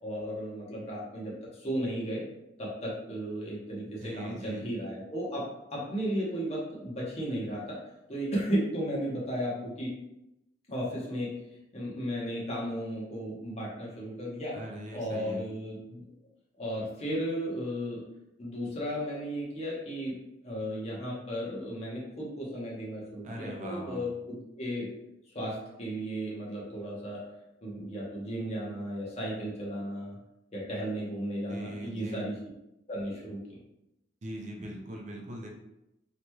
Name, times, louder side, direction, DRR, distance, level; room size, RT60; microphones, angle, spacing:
voice 1, 0.0-2.2 2.6-7.8 8.1-9.9 10.7-11.3 11.7-14.6 14.9-16.1 16.6-18.0 18.4-20.1 20.4-24.9 25.3-27.2 27.6-30.2 30.5-32.3 32.9-33.6, equal, 35° left, -4 dB, 0.9 m, -34 dB
voice 2, 3.8-4.6 14.5-15.4 23.2-24.0 31.5-32.2 34.2-35.5, right 1 dB, 40° right, 0 dB, 0.5 m, -40 dB
3.0 x 2.9 x 2.2 m, 0.88 s
head